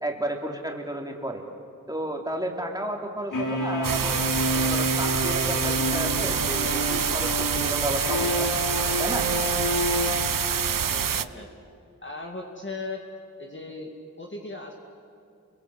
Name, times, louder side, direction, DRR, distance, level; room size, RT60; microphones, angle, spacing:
voice 1, 0.0-1.4 1.9-4.2 4.5-8.5 9.0-9.3, right 1 dB, 10° right, 1 dB, 3.7 m, -32 dB
sound 1, 3.3-11.1, equal, 80° left, 3.3 m, -29 dB
sound 2, 3.8-11.3, right 8 dB, 80° right, 0.7 m, -27 dB
voice 2, 10.9-11.5 12.0-13.0 13.4-13.9 14.2-14.7, left 3 dB, 35° left, 0 dB, 2.4 m, -37 dB
28.5 x 22.5 x 8.2 m, 2.5 s
wide cardioid pair, 45°, 32 cm